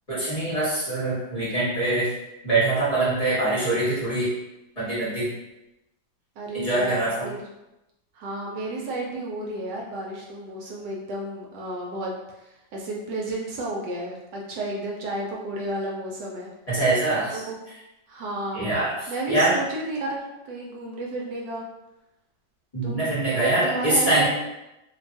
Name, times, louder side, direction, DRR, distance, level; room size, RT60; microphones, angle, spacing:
voice 1, 0.1-2.1 2.4-4.3 4.8-5.3 6.5-7.2 16.7-17.4 18.5-19.5 22.7-24.3, right 2 dB, 30° left, -10 dB, 0.8 m, -24 dB
voice 2, 6.4-7.5 8.1-16.5 17.3-17.6 18.1-18.7 19.1-21.6 22.8-24.3, right 1 dB, 75° right, -2 dB, 1.0 m, -32 dB
3.1 x 2.2 x 2.5 m, 0.95 s
omnidirectional pair, 2.1 m